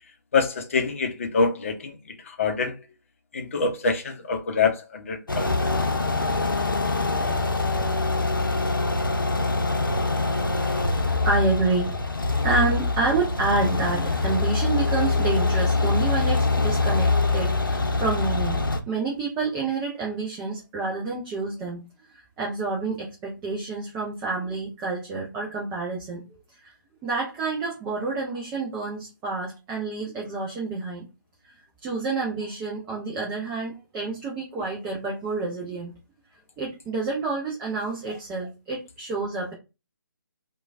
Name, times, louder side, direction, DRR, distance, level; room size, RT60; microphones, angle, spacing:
voice 1, 0.3-2.8 3.3-5.7 38.1-38.2, left 4 dB, 40° left, 0.6 m, -26 dB
sound 1, 5.3-18.8, left 3 dB, 80° left, 0.7 m, -24 dB
voice 2, 11.2-21.9 22.1-26.2 26.6-26.7 27.0-31.1 31.8-35.9 36.6-39.5, right 3 dB, 10° right, 0.4 m, -28 dB
3.0 x 2.2 x 2.4 m
figure-of-eight pair, 145°, 11 cm